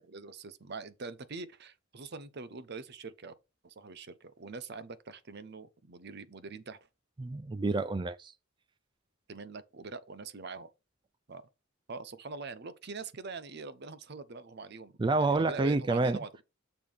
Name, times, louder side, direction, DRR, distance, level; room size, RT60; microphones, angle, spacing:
voice 1, 0.0-3.3 3.6-6.8 9.3-10.7 11.3-11.4 11.9-14.9 15.2-16.4, right 4 dB, 50° right, 0.7 m, -43 dB
voice 2, 7.2-8.3 15.0-16.2, right 3 dB, 20° right, 0.3 m, -28 dB
6.8 x 3.6 x 6.0 m
head